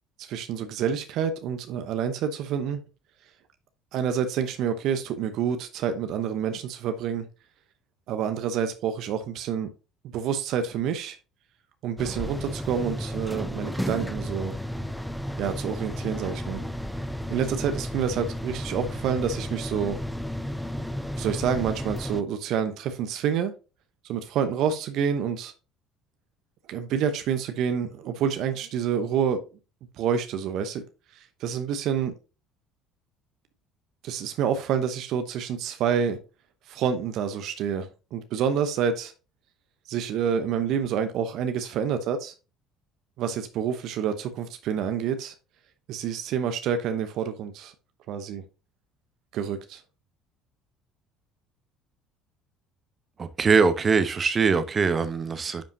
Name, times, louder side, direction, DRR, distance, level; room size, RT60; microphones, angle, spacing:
voice 1, 0.2-2.8 3.9-7.3 8.1-9.7 10.1-11.2 11.8-14.6 15.4-16.6 17.3-20.0 21.2-23.5 24.0-25.5 26.7-29.4 30.0-30.8 31.1-32.1 34.0-36.2 36.7-39.1 39.9-42.3 43.2-45.3 45.9-47.7 48.1-48.4 49.3-49.8, right 7 dB, 60° right, 0.9 m, -28 dB
sound 1, 12.0-22.2, equal, ahead, 0.6 m, -33 dB
voice 2, 53.2-55.7, right 5 dB, 35° right, 0.9 m, -22 dB
10.0 x 5.3 x 2.8 m
hypercardioid pair, 60°, 0 cm